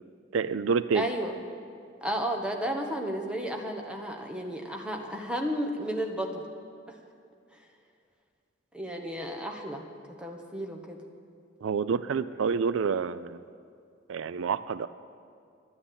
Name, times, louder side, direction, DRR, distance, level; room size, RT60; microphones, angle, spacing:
voice 1, 0.3-1.1 11.6-13.4 14.1-14.9, right 6 dB, 85° right, 15 dB, 0.4 m, -28 dB
voice 2, 0.9-1.3 2.0-6.4 8.7-9.8 10.2-11.0, equal, 5° right, 2 dB, 1.2 m, -33 dB
12.5 x 9.7 x 8.7 m, 2.3 s
head